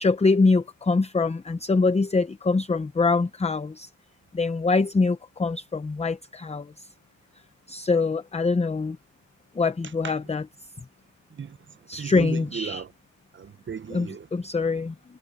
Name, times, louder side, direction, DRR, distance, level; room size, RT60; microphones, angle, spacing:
voice 1, 0.0-3.9 4.3-6.7 7.7-9.0 9.6-10.4 11.9-12.8 13.9-14.9, left 3 dB, 15° left, 0.6 m, -24 dB
voice 2, 11.3-12.9 13.3-14.3, right 7 dB, 25° right, 0.6 m, -36 dB
cardioid pair, 135°, 44 cm